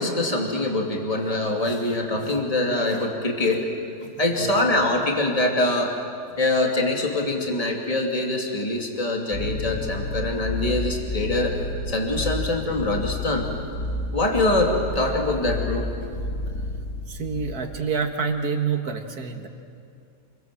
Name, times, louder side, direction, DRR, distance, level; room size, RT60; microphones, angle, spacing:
voice 1, 0.0-3.7 4.2-6.0 6.4-11.5 11.9-13.5 14.1-15.9, left 2 dB, 20° left, 0 dB, 2.8 m, -24 dB
sound 1, 9.3-17.8, left 2 dB, 65° left, 3.3 m, -31 dB
voice 2, 17.1-19.5, right 5 dB, 65° right, 4 dB, 2.3 m, -27 dB
28.5 x 22.5 x 7.6 m, 2.4 s
omnidirectional pair, 1.7 m